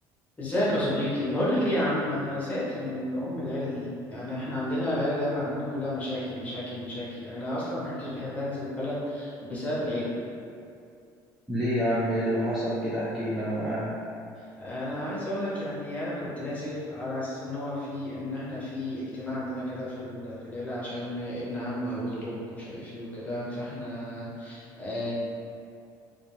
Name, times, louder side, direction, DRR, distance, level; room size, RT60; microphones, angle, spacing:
voice 1, 0.4-10.1 14.5-25.1, left 1 dB, 15° left, -8 dB, 0.7 m, -31 dB
voice 2, 11.5-13.9, equal, 5° right, -10 dB, 0.3 m, -27 dB
2.3 x 2.2 x 3.0 m, 2.5 s
cardioid pair, 150°, 9 cm